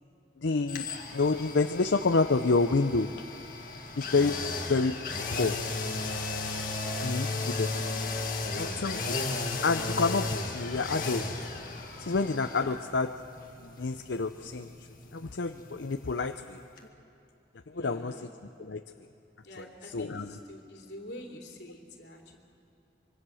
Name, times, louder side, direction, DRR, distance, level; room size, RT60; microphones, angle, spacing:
voice 1, 0.4-0.9 1.1-3.1 4.0-4.4 4.7-5.0 5.4-5.6 7.0-7.7 8.6-9.2 9.6-11.2 12.0-13.1 13.6-14.7 15.1-16.6 17.7-18.2 18.6-18.8 19.6-20.3, left 3 dB, 90° left, 7 dB, 0.6 m, -28 dB
sound 1, 0.7-16.5 16.8-16.9, left 3 dB, 50° left, 2.0 m, -35 dB
voice 2, 17.7-18.3 19.4-22.4, left 1 dB, 70° left, 0 dB, 3.2 m, -46 dB
25.0 x 24.0 x 6.4 m, 2.8 s
head